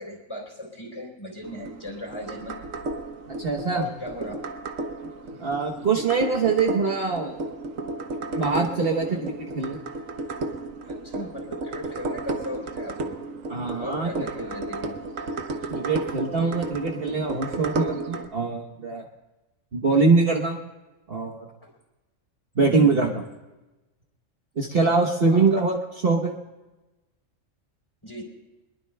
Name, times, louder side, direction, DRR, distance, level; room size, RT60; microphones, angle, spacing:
voice 1, 0.0-2.6 3.7-4.3 9.0-9.2 10.8-13.2 13.8-15.0 21.6-21.7 22.8-23.2 24.7-24.9 25.3-25.4 28.0-28.2, left 1 dB, 20° left, 0 dB, 3.6 m, -38 dB
sound 1, 1.4-18.3, right 3 dB, 90° right, 1.4 m, -33 dB
voice 2, 3.4-3.9 5.4-7.4 8.4-9.8 13.5-14.1 15.7-19.0 19.7-20.6 21.1-21.5 22.6-23.2 24.6-25.8 26.0-26.4, right 4 dB, 50° right, 1 dB, 1.2 m, -23 dB
23.0 x 21.5 x 2.3 m, 1.1 s
omnidirectional pair, 1.3 m